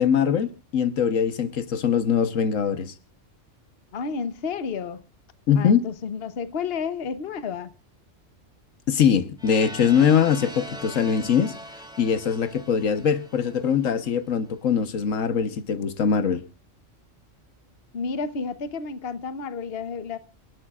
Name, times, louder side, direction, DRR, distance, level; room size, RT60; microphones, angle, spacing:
voice 1, 0.0-2.9 5.5-5.8 8.9-11.5 12.0-16.4, left 7 dB, 85° left, 1.5 m, -22 dB
voice 2, 3.9-5.0 5.5-7.7 17.9-20.2, left 5 dB, 55° left, 1.2 m, -31 dB
sound 1, 9.4-14.2, equal, 5° right, 1.5 m, -41 dB
29.5 x 12.5 x 2.4 m
omnidirectional pair, 1.3 m